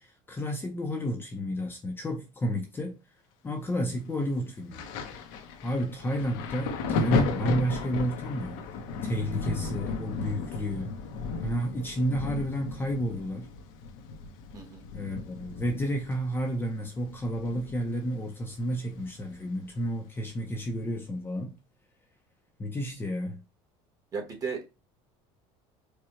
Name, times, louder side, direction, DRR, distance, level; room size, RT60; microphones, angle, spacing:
voice 1, 0.0-3.0 3.4-4.8 5.6-8.6 9.0-10.9 11.4-13.5 14.9-21.6 22.6-23.4, equal, 15° left, 0.6 m, -31 dB
Thunder, 4.7-18.1 18.3-19.7 20.5-20.7, left 4 dB, 75° left, 0.9 m, -35 dB
voice 2, 14.5-14.8 24.1-24.7, right 5 dB, 25° right, 1.3 m, -35 dB
4.7 x 2.3 x 3.0 m
cardioid pair, 145°, 13 cm